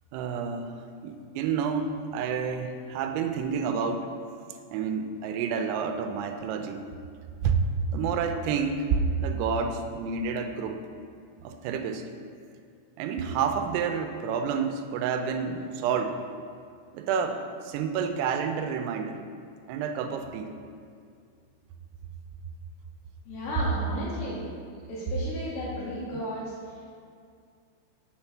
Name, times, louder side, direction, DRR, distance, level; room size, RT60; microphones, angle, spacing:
voice 1, 0.1-4.1 4.7-6.9 7.4-7.6 7.9-10.8 11.4-12.0 13.0-16.2 16.9-19.2 19.7-20.5, right 6 dB, 90° right, 6 dB, 3.3 m, -29 dB
voice 2, 23.3-24.4 24.9-26.9, equal, 75° left, -8 dB, 2.2 m, -34 dB
7.2 x 4.3 x 5.9 m, 2.2 s
omnidirectional pair, 5.8 m